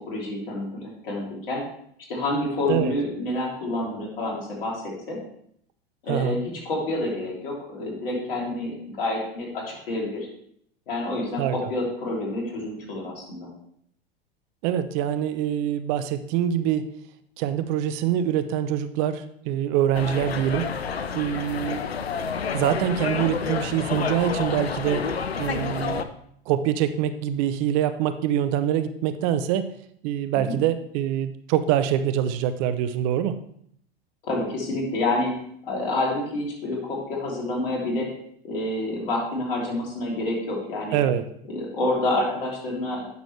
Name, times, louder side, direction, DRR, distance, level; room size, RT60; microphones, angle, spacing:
voice 1, 0.0-1.6 2.1-5.2 6.0-6.4 6.6-10.3 10.9-13.5 30.3-30.6 34.2-35.3 35.6-38.1 38.4-41.0 41.5-43.1, left 2 dB, 65° left, -2 dB, 3.2 m, -28 dB
voice 2, 6.1-6.4 11.4-11.6 14.6-16.9 17.4-20.7 21.1-21.8 22.5-26.1 26.5-29.7 30.0-33.4 40.9-41.2, right 10 dB, 50° right, 11 dB, 0.7 m, -25 dB
sound 1, 19.9-26.0, left 6 dB, 90° left, 0.6 m, -29 dB
9.4 x 6.2 x 3.3 m, 0.68 s
hypercardioid pair, 90°, 30 cm